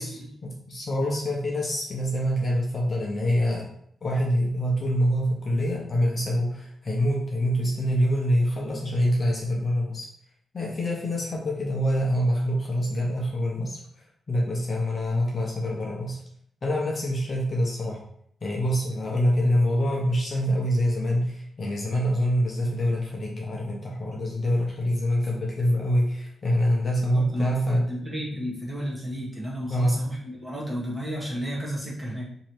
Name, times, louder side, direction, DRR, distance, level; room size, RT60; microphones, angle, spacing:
voice 1, 0.0-3.7 4.0-10.1 10.5-16.2 16.6-18.0 18.4-27.9 29.7-29.9, equal, 35° left, -2 dB, 0.7 m, -25 dB
voice 2, 27.0-32.3, equal, 15° right, -5 dB, 1.1 m, -33 dB
3.0 x 2.7 x 4.4 m, 0.69 s
wide cardioid pair, 170°, 0 cm